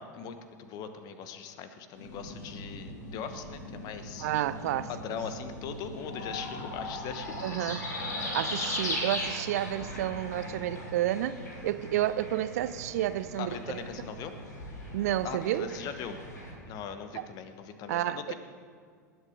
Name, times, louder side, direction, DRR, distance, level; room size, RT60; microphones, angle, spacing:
voice 1, 0.0-4.3 4.9-7.8 13.4-14.3 15.2-16.2 16.7-18.3, left 7 dB, 40° left, 1.1 m, -40 dB
sound 1, 2.0-16.5, left 1 dB, 70° left, 2.8 m, -39 dB
voice 2, 4.2-4.9 7.4-7.9 8.2-13.8 14.9-15.7 17.1-17.2 17.9-18.3, right 13 dB, 60° right, 0.5 m, -31 dB
19.0 x 7.9 x 5.1 m
figure-of-eight pair, 85°, 10 cm